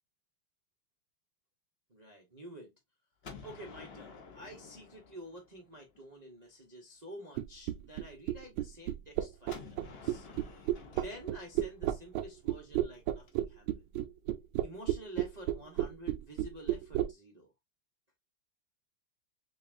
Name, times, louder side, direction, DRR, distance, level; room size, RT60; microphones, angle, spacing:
voice 1, 1.9-2.7 3.4-10.3 10.9-13.9 14.6-17.5, right 1 dB, 60° right, 0.4 m, -49 dB
Gunshot gunfire, 3.2-6.1 9.5-13.3, left 5 dB, 65° left, 0.6 m, -51 dB
sound 1, 7.4-17.1, right 13 dB, 75° right, 1.3 m, -31 dB
6.5 x 2.4 x 2.5 m
omnidirectional pair, 2.4 m